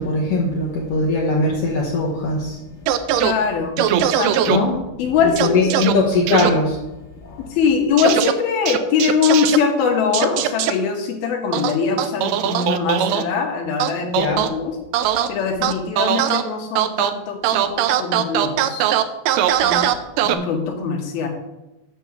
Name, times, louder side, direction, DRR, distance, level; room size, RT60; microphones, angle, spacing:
voice 1, 0.0-2.6 3.8-4.0 4.5-4.9 5.4-6.9 7.2-7.5 14.1-14.5, left 3 dB, 65° left, -3 dB, 1.6 m, -20 dB
sound 1, 2.9-3.3 3.8-4.6 5.4-5.9 6.3-6.5 8.0-8.3 8.7-9.6 10.1-10.7 11.5-13.2 13.8-14.5 14.9-15.3 15.6-16.4 16.8-17.1 17.4-20.3, right 11 dB, 80° right, 2.0 m, -19 dB
voice 2, 3.2-4.6 5.0-5.7 7.4-14.8 15.3-18.9 19.6-19.9 20.2-21.3, left 6 dB, 85° left, 3 dB, 3.1 m, -22 dB
6.9 x 6.3 x 6.9 m, 0.98 s
omnidirectional pair, 4.2 m